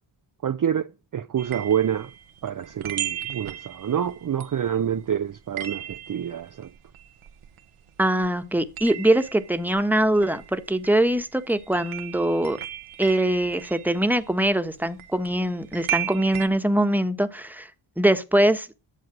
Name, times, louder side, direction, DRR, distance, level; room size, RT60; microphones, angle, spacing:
voice 1, 0.4-2.1 2.4-6.7, right 9 dB, 40° right, 0.6 m, -27 dB
sound 1, 1.4-8.0 8.2-16.5, right 10 dB, 85° right, 1.2 m, -36 dB
voice 2, 8.0-12.6 13.0-17.7 18.0-18.7, right 1 dB, 5° right, 1.3 m, -22 dB
11.0 x 7.5 x 6.1 m
cardioid pair, 65°, 49 cm